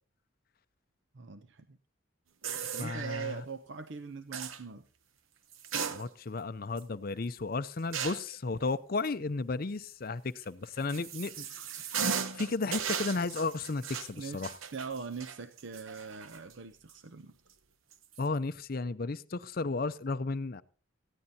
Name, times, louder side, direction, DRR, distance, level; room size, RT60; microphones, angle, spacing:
voice 1, 1.1-1.8 2.6-4.8 14.1-17.3, right 5 dB, 65° right, 0.7 m, -42 dB
sound 1, 2.4-3.3 4.3-4.6 5.5-6.4 6.8-6.9 7.9-8.4 10.4-16.5 16.9-17.0 17.9-18.2, right 7 dB, 85° right, 1.0 m, -37 dB
voice 2, 2.8-3.4 5.9-11.5 12.3-14.5 18.2-20.6, left 3 dB, 45° left, 0.5 m, -34 dB
18.5 x 15.0 x 2.8 m
head